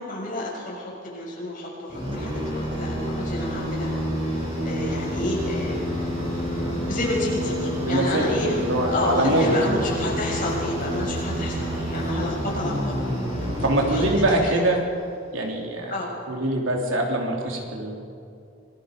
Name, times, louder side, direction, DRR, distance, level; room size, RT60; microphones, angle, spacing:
voice 1, 0.0-3.9 4.2-6.1 6.9-12.9 13.4-14.0 14.3-14.6 15.9-16.1, left 1 dB, 40° left, -4 dB, 7.1 m, -30 dB
sound 1, 1.9-14.7, equal, 25° right, 7.6 m, -28 dB
voice 2, 7.5-9.8 13.6-14.8 15.3-16.0 16.3-17.9, right 1 dB, 70° right, 0 dB, 3.5 m, -23 dB
27.0 x 20.5 x 5.3 m, 2.5 s
head